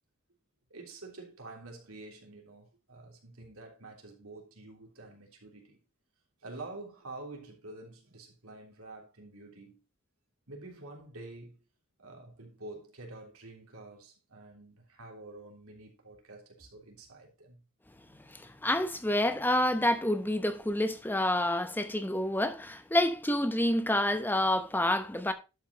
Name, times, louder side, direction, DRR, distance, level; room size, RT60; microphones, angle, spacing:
voice 1, 0.7-5.8 6.4-9.8 10.5-11.6 12.0-17.6, right 2 dB, 85° right, 3.4 m, -48 dB
voice 2, 18.2-25.3, left 1 dB, 10° left, 0.9 m, -28 dB
11.5 x 5.5 x 4.1 m
head